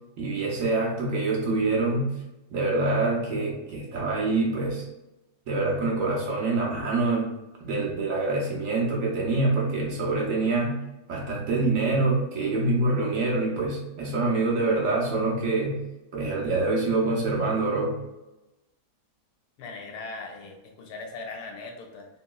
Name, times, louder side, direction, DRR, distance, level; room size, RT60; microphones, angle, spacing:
voice 1, 0.2-2.1 2.5-4.8 5.5-7.3 7.6-10.8 11.1-15.8 16.1-18.0, right 3 dB, 65° right, -3 dB, 0.9 m, -25 dB
voice 2, 19.6-22.1, left 3 dB, 75° left, 2 dB, 1.1 m, -39 dB
3.0 x 2.7 x 2.3 m, 0.98 s
omnidirectional pair, 1.7 m